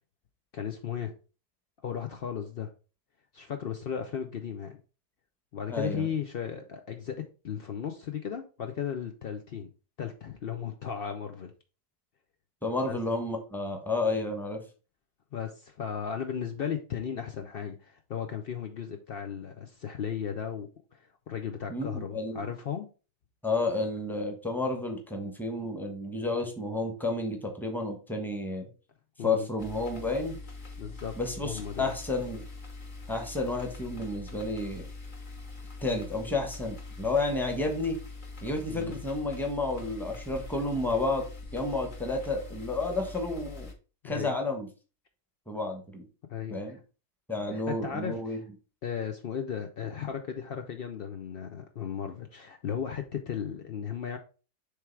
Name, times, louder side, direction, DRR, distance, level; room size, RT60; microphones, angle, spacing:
voice 1, 0.5-1.1 1.8-2.7 3.3-4.8 5.5-9.7 10.0-11.5 12.8-13.0 15.3-22.9 29.2-29.5 30.8-31.1 31.4-31.9 38.7-39.0 44.0-44.4 46.3-46.8 47.5-48.5 48.8-54.2, left 8 dB, 80° left, 5 dB, 0.5 m, -35 dB
voice 2, 5.7-6.1 12.6-14.6 21.7-22.5 23.4-28.7 29.2-30.4 31.2-32.4 33.1-34.8 35.8-38.0 38.4-41.2 41.5-43.7 44.0-44.7 45.5-46.0 46.5-46.8 47.3-48.4, left 2 dB, ahead, 3 dB, 1.0 m, -31 dB
sound 1, 29.6-43.7, left 3 dB, 35° left, 1.0 m, -43 dB
6.6 x 3.4 x 4.6 m, 0.35 s
omnidirectional pair, 1.8 m